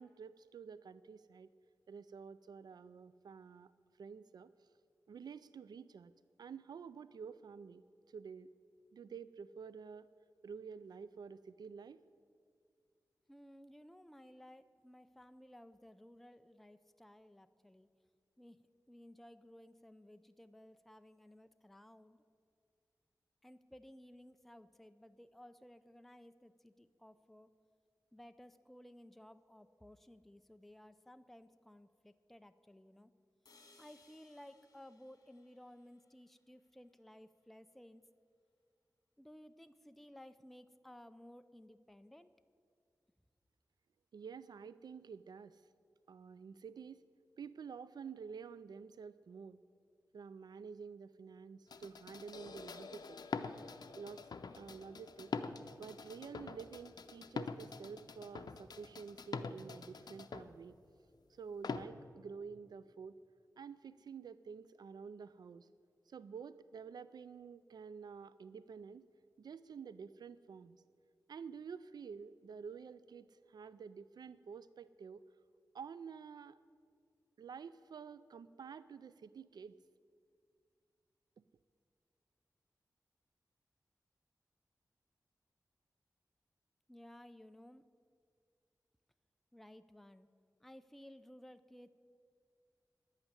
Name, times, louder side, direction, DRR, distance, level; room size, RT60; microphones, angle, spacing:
voice 1, 0.0-1.5 1.9-3.7 4.0-4.7 5.1-6.1 6.4-8.5 8.9-10.1 10.4-12.0 44.1-45.6 46.1-47.0 47.4-49.6 50.1-53.2 53.9-54.3 54.5-55.3 55.8-60.8 61.3-63.2 63.6-65.7 66.1-69.1 69.4-70.8 71.3-75.2 75.7-76.6 77.4-79.8, right 6 dB, 90° right, 15 dB, 0.3 m, -50 dB
voice 2, 13.3-17.9 18.4-18.6 18.9-22.2 23.4-27.5 28.1-33.1 33.8-38.0 39.2-42.3 86.9-87.8 89.5-90.3 90.6-91.9, left 1 dB, 5° left, 10 dB, 0.5 m, -57 dB
sound 1, 33.4-37.5, left 3 dB, 60° left, 2.0 m, -68 dB
sound 2, 51.7-60.5 61.6-61.8, left 4 dB, 80° left, 0.6 m, -45 dB
11.0 x 8.9 x 9.7 m, 2.2 s
wide cardioid pair, 100°, 7 cm